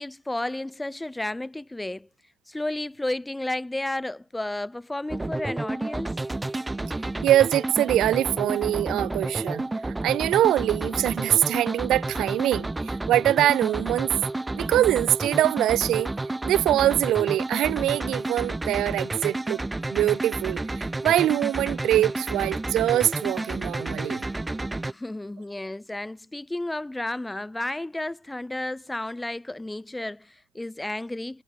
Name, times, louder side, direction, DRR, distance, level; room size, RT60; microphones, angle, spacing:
voice 1, 0.0-2.1 2.5-6.2 24.9-31.4, left 1 dB, 10° left, 5.4 m, -32 dB
sound 1, 5.1-24.9, right 2 dB, 10° right, 7.0 m, -30 dB
voice 2, 7.2-9.7 10.0-14.1 14.5-16.1 16.4-19.6 19.9-24.2, right 13 dB, 70° right, 6.0 m, -23 dB
cardioid pair, 105°, 0 cm